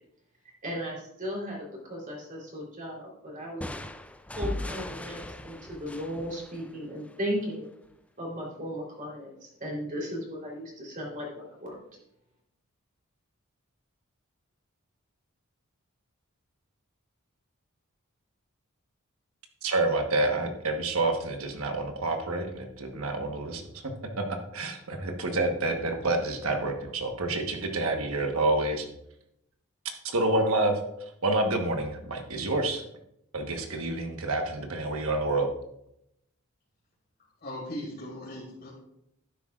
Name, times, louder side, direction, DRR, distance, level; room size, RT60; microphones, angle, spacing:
voice 1, 0.6-3.7 4.3-7.7 8.2-11.8, equal, 40° right, -3 dB, 3.6 m, -36 dB
sound 1, 3.6-7.3, left 1 dB, 5° left, 0.4 m, -38 dB
voice 2, 19.6-23.9 24.5-28.9 30.0-30.7 31.2-32.8 33.3-35.5, right 2 dB, 70° right, 4 dB, 1.3 m, -28 dB
voice 3, 37.4-38.7, left 1 dB, 45° left, -6 dB, 2.6 m, -38 dB
12.0 x 9.8 x 2.5 m, 0.79 s
head